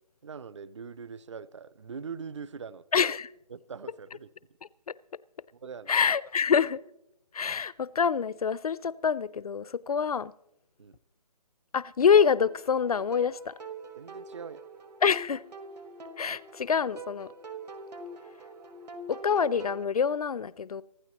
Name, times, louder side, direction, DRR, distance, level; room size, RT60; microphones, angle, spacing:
voice 1, 0.2-2.8 3.5-4.3 5.6-5.9 10.8-11.0 14.0-14.6, right 6 dB, 45° right, 0.5 m, -42 dB
voice 2, 2.9-3.3 5.9-6.8 7.3-10.3 11.7-13.5 15.0-15.4 16.2-17.3 19.1-20.8, left 6 dB, 65° left, 0.5 m, -26 dB
sound 1, 12.2-19.8, right 2 dB, 80° right, 1.7 m, -44 dB
25.0 x 11.5 x 3.0 m
hypercardioid pair, 170°, 21 cm